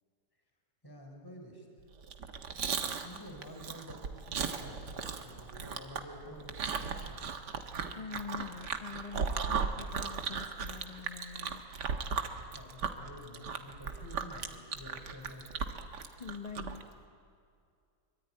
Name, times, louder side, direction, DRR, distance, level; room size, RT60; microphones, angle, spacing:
voice 1, 0.8-1.8 3.0-7.2 12.5-15.7, left 1 dB, 10° left, 1 dB, 4.0 m, -50 dB
Chewing mastication, 2.0-16.8, right 6 dB, 70° right, 2.0 m, -37 dB
voice 2, 7.9-11.6 16.1-16.9, left 6 dB, 25° left, 9 dB, 1.1 m, -45 dB
24.5 x 24.0 x 9.8 m, 2.3 s
omnidirectional pair, 1.9 m